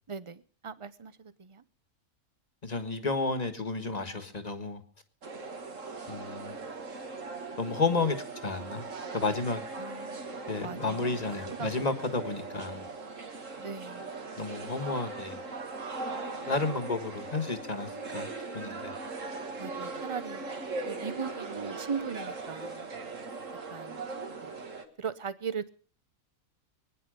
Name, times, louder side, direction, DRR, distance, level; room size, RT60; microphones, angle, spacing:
voice 1, 0.1-1.6 9.7-11.9 13.6-14.1 19.6-20.5 20.9-22.9 23.7-24.1 24.4-24.5 25.0-25.7, right 6 dB, 30° right, 0.6 m, -39 dB
voice 2, 2.6-4.8 6.1-6.6 7.6-8.2 8.4-8.8 9.1-9.6 10.5-12.9 14.4-15.4 16.4-18.9, left 3 dB, 30° left, 1.6 m, -32 dB
sound 1, 5.2-24.8, right 3 dB, 65° right, 2.1 m, -39 dB
24.0 x 9.9 x 5.1 m
omnidirectional pair, 1.5 m